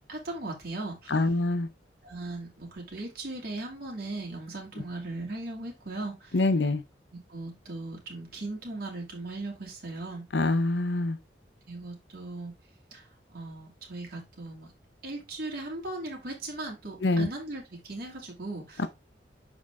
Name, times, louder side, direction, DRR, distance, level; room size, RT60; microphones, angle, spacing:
voice 1, 0.1-1.2 2.0-6.4 7.1-10.2 11.7-12.5 12.9-13.1 13.3-14.7 15.0-18.9, right 2 dB, 60° right, 2.9 m, -38 dB
voice 2, 1.1-1.7 6.3-6.8 10.3-11.2 17.0-17.3 18.8-18.9, left 2 dB, 80° left, 0.8 m, -25 dB
6.4 x 4.9 x 3.6 m
head